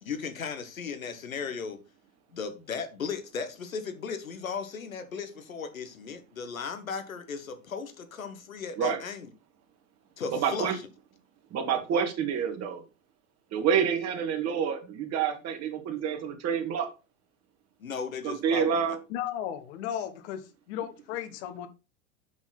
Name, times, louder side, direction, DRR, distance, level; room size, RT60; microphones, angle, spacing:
voice 1, 0.0-1.8 2.3-9.3 10.2-10.8 17.8-18.8, left 5 dB, 80° left, 1.4 m, -36 dB
voice 2, 10.3-10.7 11.5-12.8 13.5-16.9 18.2-19.0, right 7 dB, 40° right, 2.0 m, -28 dB
voice 3, 19.1-21.7, left 10 dB, 55° left, 1.3 m, -35 dB
7.2 x 6.2 x 4.1 m
figure-of-eight pair, 85°, 41 cm